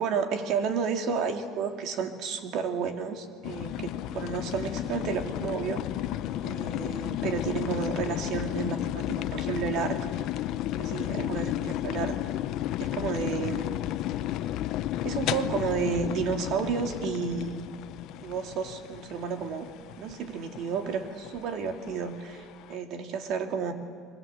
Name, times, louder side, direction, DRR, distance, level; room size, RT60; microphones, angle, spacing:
voice 1, 0.0-5.8 6.4-10.0 10.7-12.2 12.8-13.6 15.0-17.6 18.2-19.7 20.0-23.7, right 6 dB, 55° right, 5 dB, 2.6 m, -31 dB
sound 1, 3.4-22.8, left 13 dB, 60° left, 0.8 m, -33 dB
30.0 x 23.0 x 8.0 m, 2.1 s
cardioid pair, 155°, 0 cm